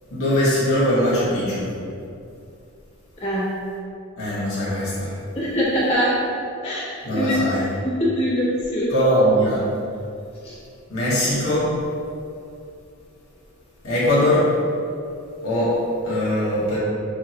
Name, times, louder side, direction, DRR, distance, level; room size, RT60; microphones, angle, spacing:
voice 1, 0.1-1.7 4.2-5.1 7.0-7.6 8.9-9.6 10.9-11.8 13.8-14.5 15.4-16.8, equal, 70° left, -9 dB, 1.5 m, -21 dB
voice 2, 3.2-3.5 5.3-6.1 6.6-7.3 7.8-8.9 10.4-10.5, equal, 25° left, -12 dB, 1.3 m, -23 dB
6.4 x 2.4 x 3.0 m, 2.5 s
head